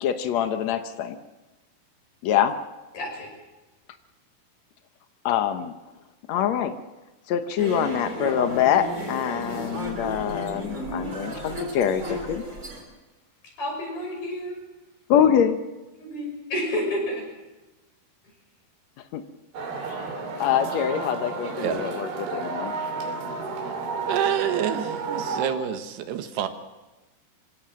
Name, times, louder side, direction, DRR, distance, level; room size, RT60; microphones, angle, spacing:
voice 1, 0.0-1.2 2.2-2.5 5.2-5.7 6.3-6.7 7.3-12.4 15.1-15.6 19.1-19.2 19.9-20.1 20.4-22.7, left 9 dB, 90° left, 8 dB, 1.5 m, -24 dB
voice 2, 2.9-3.3 13.6-14.6 16.0-17.3, left 1 dB, 60° left, 1 dB, 7.9 m, -30 dB
sound 1, 7.6-12.8, right 1 dB, 20° right, 4.4 m, -33 dB
sound 2, 19.5-25.5, right 4 dB, 70° right, 4.9 m, -31 dB
voice 3, 24.1-26.5, right 9 dB, 90° right, 8 dB, 3.5 m, -27 dB
25.5 x 17.0 x 7.5 m, 1.1 s
omnidirectional pair, 4.7 m